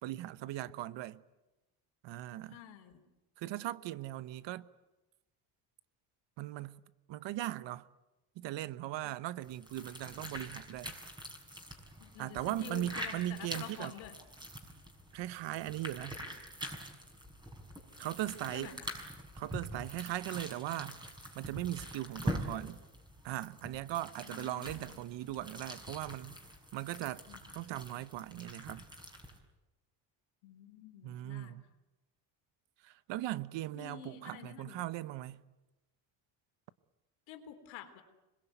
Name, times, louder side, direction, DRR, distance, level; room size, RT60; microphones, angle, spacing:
voice 1, 0.0-1.2 2.0-2.6 3.4-4.7 6.4-6.8 7.1-7.9 8.4-11.0 12.2-13.9 15.1-16.2 18.0-18.8 19.3-21.0 21.3-22.8 23.2-26.4 26.7-27.2 27.5-28.9 31.0-31.6 32.8-35.4, right 14 dB, 65° right, 1.1 m, -39 dB
voice 2, 2.5-2.9 9.0-9.1 12.0-14.1 18.5-18.7 24.2-25.0 27.3-27.4 30.4-31.6 33.7-34.9 37.3-38.0, left 10 dB, 80° left, 3.9 m, -49 dB
sound 1, 9.4-29.4, equal, 10° right, 5.9 m, -45 dB
26.0 x 21.5 x 9.3 m
cardioid pair, 100°, 47 cm